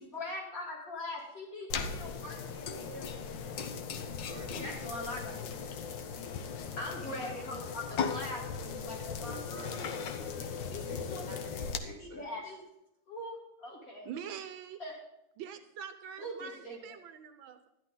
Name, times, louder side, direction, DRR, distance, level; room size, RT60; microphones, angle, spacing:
voice 1, 0.0-3.4 4.5-5.8 6.8-10.1 10.4-11.6 12.0-12.6 13.1-14.1 14.8-14.9 16.2-16.9, left 1 dB, 45° left, -4 dB, 3.4 m, -42 dB
sound 1, 1.7-11.8, left 6 dB, 70° left, 1.5 m, -38 dB
voice 2, 3.9-4.8 9.2-12.4, equal, 35° right, -2 dB, 3.8 m, -48 dB
voice 3, 14.0-14.8 15.4-17.7, right 8 dB, 80° right, 10 dB, 1.5 m, -44 dB
12.5 x 11.0 x 3.9 m, 0.87 s
omnidirectional pair, 2.1 m